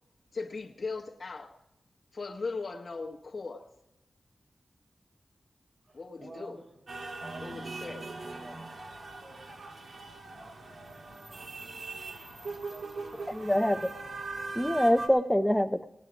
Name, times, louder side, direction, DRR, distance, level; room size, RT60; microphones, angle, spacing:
voice 1, 0.3-1.6 2.1-3.7 5.9-6.6 7.4-8.0, left 4 dB, 55° left, 0.9 m, -38 dB
voice 2, 5.8-6.8 7.2-9.6 10.1-10.3 12.4-13.9, right 2 dB, 50° right, 3.7 m, -52 dB
sound 1, 6.9-15.1, right 3 dB, 75° right, 1.5 m, -41 dB
voice 3, 13.3-13.9 14.6-15.9, equal, 5° left, 0.4 m, -25 dB
18.0 x 9.9 x 5.0 m
wide cardioid pair, 120°, 0 cm